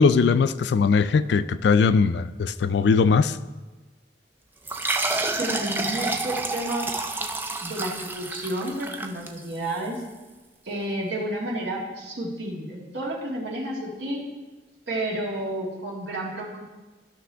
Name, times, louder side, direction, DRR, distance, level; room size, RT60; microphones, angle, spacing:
voice 1, 0.0-3.4, left 5 dB, 80° left, 14 dB, 0.3 m, -20 dB
sound 1, 4.6-9.8, right 2 dB, 10° right, 0.4 m, -29 dB
voice 2, 5.4-6.9 7.6-10.0 10.7-14.2 14.9-16.7, right 1 dB, 85° right, -4 dB, 2.1 m, -31 dB
12.0 x 6.0 x 3.4 m, 1.2 s
head